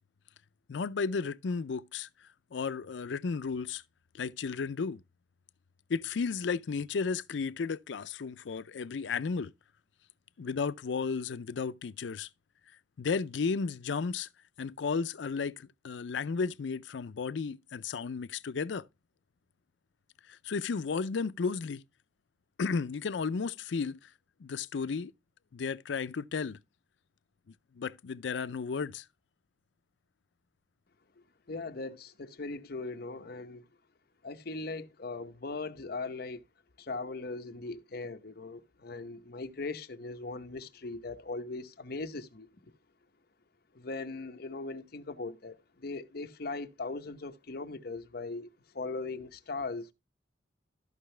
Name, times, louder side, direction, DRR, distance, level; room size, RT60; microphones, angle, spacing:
voice 1, 0.7-2.1 2.5-3.8 4.1-5.0 5.9-9.5 10.4-12.3 13.0-14.3 14.6-18.8 20.3-21.8 22.6-24.1 24.4-25.1 25.5-26.6 27.8-29.0, left 5 dB, 80° left, 0.5 m, -33 dB
voice 2, 31.5-33.6 34.2-36.4 36.8-42.5 43.7-48.5 48.7-49.9, left 3 dB, 55° left, 0.9 m, -39 dB
13.5 x 5.6 x 3.2 m
head